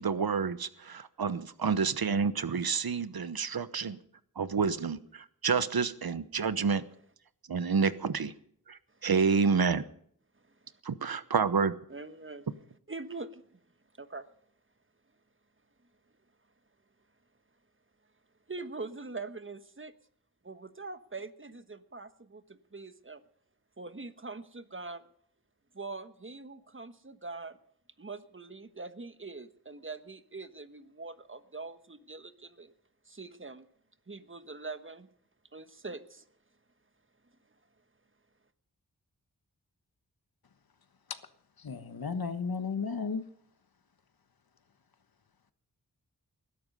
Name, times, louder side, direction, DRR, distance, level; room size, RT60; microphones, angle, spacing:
voice 1, 0.0-4.0 4.4-6.8 7.5-8.3 8.7-9.8 10.8-11.8, right 5 dB, 75° right, 1.1 m, -29 dB
voice 2, 11.9-12.5 12.9-13.6 14.0-14.3 18.5-19.9 20.4-23.2 23.8-25.0 25.7-27.6 28.0-32.7 33.1-33.7 34.1-35.1 35.5-36.2, right 3 dB, 35° right, 1.3 m, -43 dB
voice 3, 41.6-43.2, left 5 dB, 75° left, 1.3 m, -34 dB
20.5 x 11.5 x 5.5 m
wide cardioid pair, 55°, 37 cm